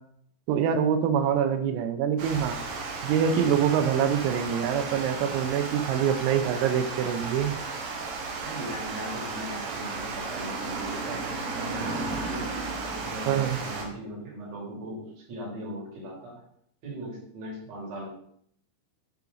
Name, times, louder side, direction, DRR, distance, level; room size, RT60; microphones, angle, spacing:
voice 1, 0.5-2.6 3.0-7.5 13.3-13.6, right 8 dB, 90° right, 8 dB, 3.4 m, -25 dB
Water, 2.2-13.9, right 3 dB, 70° right, 2.3 m, -34 dB
voice 2, 8.4-12.4 12.9-16.3 16.8-18.1, right 1 dB, 40° right, -4 dB, 3.3 m, -39 dB
8.8 x 5.7 x 3.9 m, 0.65 s
omnidirectional pair, 5.9 m